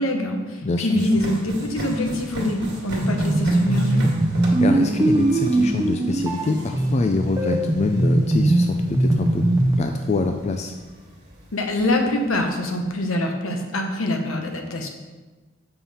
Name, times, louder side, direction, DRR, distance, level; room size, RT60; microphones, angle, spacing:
voice 1, 0.0-4.1 11.5-14.9, left 1 dB, 70° left, 4 dB, 1.0 m, -24 dB
voice 2, 0.6-1.1 4.6-9.4 9.8-10.7, left 3 dB, 30° left, 5 dB, 0.3 m, -25 dB
sound 1, 1.0-13.0, equal, 50° right, 1.7 m, -38 dB
sound 2, 3.0-9.9, right 1 dB, 15° right, 0.7 m, -21 dB
7.3 x 5.6 x 4.2 m, 1.3 s
head